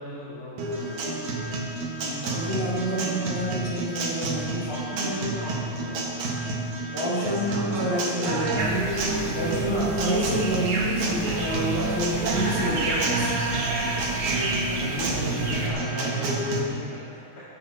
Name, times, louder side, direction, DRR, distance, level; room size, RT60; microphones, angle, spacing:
voice 1, 0.0-1.5 2.2-2.5 4.7-6.6 14.7-17.2, equal, 45° left, -9 dB, 3.1 m, -36 dB
Guitar, 0.6-16.6, right 2 dB, 75° right, 2.9 m, -29 dB
voice 2, 1.9-4.7 6.9-9.0 9.3-13.3, right 1 dB, 70° left, -8 dB, 4.3 m, -28 dB
sound 1, 8.6-15.7, right 2 dB, 55° right, 2.5 m, -31 dB
22.0 x 10.5 x 2.8 m, 2.2 s
omnidirectional pair, 3.4 m